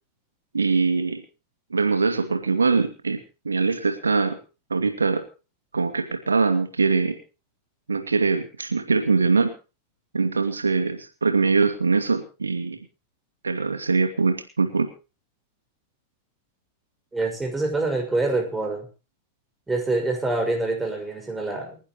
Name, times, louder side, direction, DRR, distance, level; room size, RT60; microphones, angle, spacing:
voice 1, 0.5-1.2 1.7-3.2 3.4-4.4 4.7-5.2 5.7-7.2 7.9-9.5 10.1-12.8 13.4-14.9, right 4 dB, 75° right, 8 dB, 2.4 m, -22 dB
voice 2, 17.1-18.9 19.7-21.8, right 2 dB, 10° right, 4 dB, 6.1 m, -25 dB
29.5 x 11.0 x 3.1 m, 0.34 s
figure-of-eight pair, 90°, 0 cm